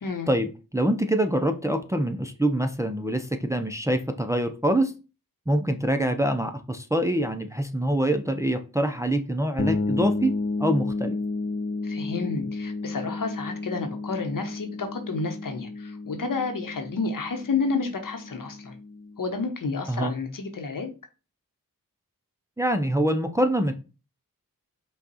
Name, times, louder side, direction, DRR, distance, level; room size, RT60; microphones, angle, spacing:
voice 1, 0.3-4.9 5.5-10.3 10.6-11.2 19.9-20.1 22.6-23.7, right 1 dB, 10° right, 0.5 m, -25 dB
sound 1, 9.6-19.2, left 3 dB, 40° left, 0.6 m, -32 dB
voice 2, 11.8-18.7 19.2-20.9, left 4 dB, 65° left, 1.0 m, -30 dB
5.4 x 2.3 x 4.0 m
cardioid pair, 55°, 35 cm